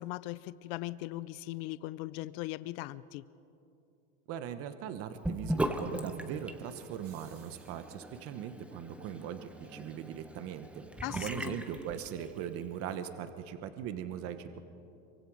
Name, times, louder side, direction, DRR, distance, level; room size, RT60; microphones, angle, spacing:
voice 1, 0.0-3.2 11.0-11.6, left 17 dB, 65° left, 17 dB, 0.6 m, -39 dB
voice 2, 4.3-10.9 11.1-14.6, right 9 dB, 45° right, 10 dB, 1.1 m, -40 dB
Sink (filling or washing) / Bathtub (filling or washing), 5.2-12.5, right 1 dB, 5° right, 0.9 m, -39 dB
sound 1, 6.9-8.2, right 9 dB, 80° right, 2.8 m, -62 dB
24.5 x 23.5 x 4.8 m, 2.7 s
supercardioid pair, 140°, 31 cm